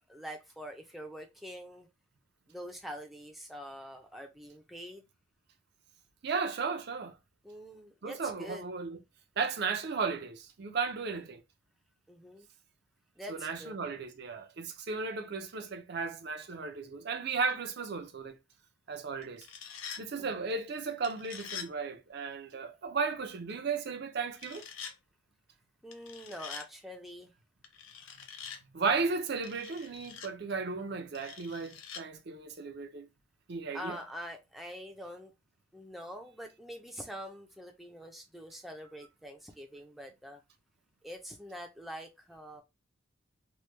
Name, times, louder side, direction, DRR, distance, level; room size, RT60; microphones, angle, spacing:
voice 1, 0.0-1.9 2.5-5.0 7.4-8.6 12.1-12.5 13.2-13.8 20.2-20.4 25.8-27.3 33.7-35.3 35.7-40.4 41.0-42.6, equal, ahead, 0.4 m, -45 dB
voice 2, 6.2-7.2 8.0-9.0 9.4-11.4 13.3-18.4 18.9-19.5 20.0-24.6 28.7-33.1 33.5-34.0, right 4 dB, 55° right, 0.5 m, -35 dB
sound 1, 19.2-20.0 21.0-21.7 24.3-24.9 25.9-26.7 27.6-28.6 29.4-30.3 31.1-32.0, left 7 dB, 80° left, 0.5 m, -45 dB
3.0 x 2.2 x 3.2 m
head